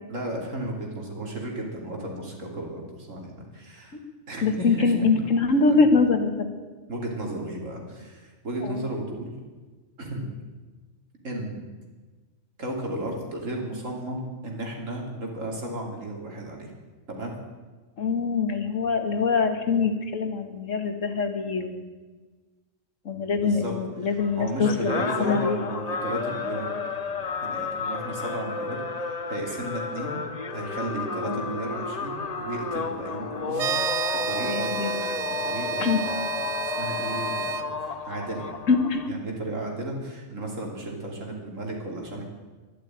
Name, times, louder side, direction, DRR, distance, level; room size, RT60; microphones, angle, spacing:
voice 1, 0.1-4.0 4.3-5.2 5.7-5.8 6.9-9.4 10.0-10.3 11.2-11.6 12.6-16.7 17.1-17.3 23.3-23.7 24.0-30.2 30.5-34.0 34.2-38.5 39.1-42.2, right 1 dB, 85° right, 0 dB, 3.3 m, -34 dB
voice 2, 4.4-6.5 8.6-8.8 18.0-21.8 23.1-25.6 31.2-31.5 34.5-35.0 35.8-36.0 38.7-39.0, left 4 dB, 80° left, 7 dB, 1.9 m, -24 dB
sound 1, 24.2-39.1, left 4 dB, 35° left, 0.8 m, -32 dB
sound 2, 33.5-37.6, right 6 dB, 65° right, 1.0 m, -30 dB
12.0 x 11.5 x 8.9 m, 1.3 s
omnidirectional pair, 1.3 m